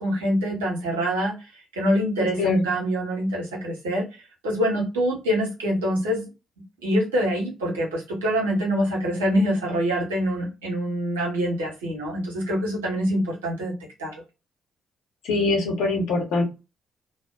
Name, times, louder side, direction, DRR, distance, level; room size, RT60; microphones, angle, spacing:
voice 1, 0.0-1.3 1.7-4.1 4.4-6.2 6.8-13.7 14.0-14.1, equal, 90° right, -2 dB, 1.0 m, -25 dB
voice 2, 2.2-2.6 15.2-16.4, left 3 dB, 75° left, 0 dB, 0.9 m, -23 dB
2.6 x 2.1 x 2.5 m, 0.27 s
hypercardioid pair, 50°, 0 cm